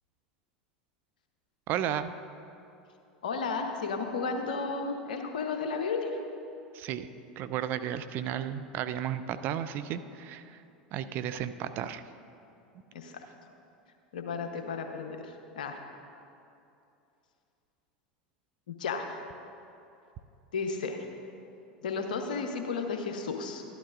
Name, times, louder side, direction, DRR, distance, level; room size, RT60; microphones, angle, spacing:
voice 1, 1.7-2.1 6.7-7.1 7.4-10.6 10.9-12.0, right 10 dB, 45° right, 12 dB, 0.4 m, -33 dB
voice 2, 3.2-6.2 12.9-13.2 14.1-15.8 18.7-19.2 20.5-21.0 21.8-23.6, left 4 dB, 70° left, 5 dB, 0.9 m, -33 dB
12.5 x 11.0 x 2.5 m, 2.7 s
figure-of-eight pair, 80°, 5 cm